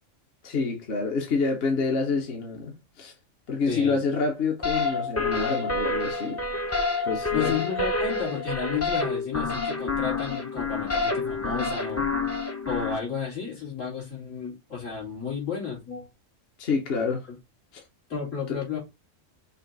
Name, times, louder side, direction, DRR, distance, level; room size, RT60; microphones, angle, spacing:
voice 1, 0.4-3.1 3.5-6.4 7.0-7.6 16.6-17.3 18.5-18.6, left 4 dB, 55° left, 1.1 m, -27 dB
voice 2, 3.7-4.0 7.3-12.0 12.6-16.1 18.1-18.8, left 6 dB, 80° left, 3.0 m, -32 dB
sound 1, 4.6-13.0, left 3 dB, 20° left, 0.4 m, -28 dB
5.5 x 2.4 x 3.9 m
omnidirectional pair, 1.3 m